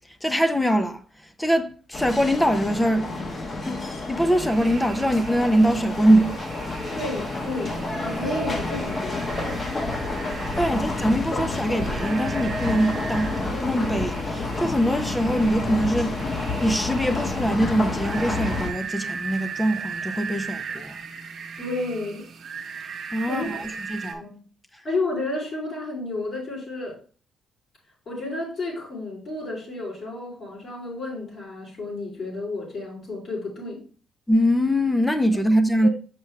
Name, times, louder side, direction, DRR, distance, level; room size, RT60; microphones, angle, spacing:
voice 1, 0.2-1.0 1.4-3.1 3.7-3.8 4.1-6.4 10.6-16.2 16.6-21.0 23.1-24.2 34.3-35.9, equal, 10° left, 0.6 m, -22 dB
sound 1, 1.9-18.7, left 2 dB, 35° left, 1.2 m, -29 dB
sound 2, 4.2-24.1, right 6 dB, 55° right, 1.1 m, -38 dB
voice 2, 6.9-7.8 8.0-9.5 21.6-22.3 23.3-23.7 24.1-24.4 24.8-27.0 28.0-33.8 35.8-35.9, left 2 dB, 55° left, 3.5 m, -31 dB
6.2 x 5.2 x 3.2 m
cardioid pair, 90°, 0 cm